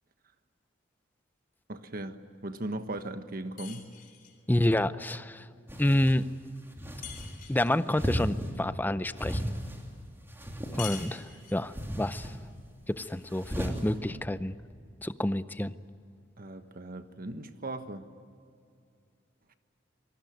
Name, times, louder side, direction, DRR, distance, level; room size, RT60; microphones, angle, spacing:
voice 1, 1.7-3.9 16.4-18.1, right 2 dB, 50° right, 9 dB, 1.3 m, -38 dB
sound 1, 3.6-4.4 7.0-7.8 10.8-11.7, left 10 dB, 50° left, 3.7 m, -44 dB
voice 2, 4.5-5.4 5.8-6.3 7.5-9.4 10.7-12.3 12.9-14.6 15.0-15.7, left 1 dB, 10° left, 14 dB, 0.6 m, -28 dB
sound 2, 5.7-6.2 6.7-7.3 7.9-8.5 9.1-9.8 10.3-11.2 11.7-12.3 13.3-13.8, equal, 15° right, 3.1 m, -35 dB
25.5 x 19.5 x 9.2 m, 2.4 s
head